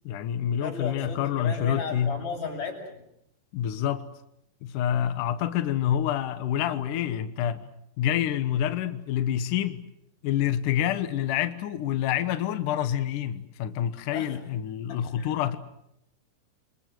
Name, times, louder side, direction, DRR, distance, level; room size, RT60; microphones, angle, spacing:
voice 1, 0.1-2.1 3.5-4.1 4.6-7.7 8.0-9.8 10.2-15.6, left 10 dB, 80° left, 1.8 m, -27 dB
voice 2, 0.6-3.0 14.1-14.4 14.9-15.6, left 5 dB, 45° left, 7.8 m, -35 dB
29.5 x 24.0 x 7.7 m
omnidirectional pair, 5.6 m